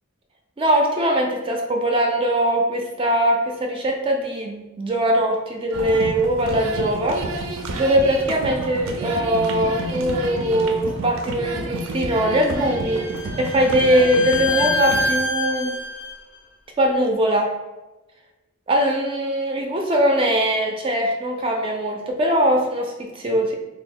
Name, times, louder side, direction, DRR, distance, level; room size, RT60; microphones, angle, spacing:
voice 1, 0.6-7.2 7.8-15.8 16.8-17.5 18.7-23.6, right 1 dB, 25° right, 2 dB, 0.3 m, -21 dB
sound 1, 5.7-15.1, right 1 dB, 85° right, 0.5 m, -30 dB
Bowed string instrument, 12.4-16.2, left 3 dB, 60° left, 0.5 m, -27 dB
2.8 x 2.3 x 3.8 m, 1.1 s
head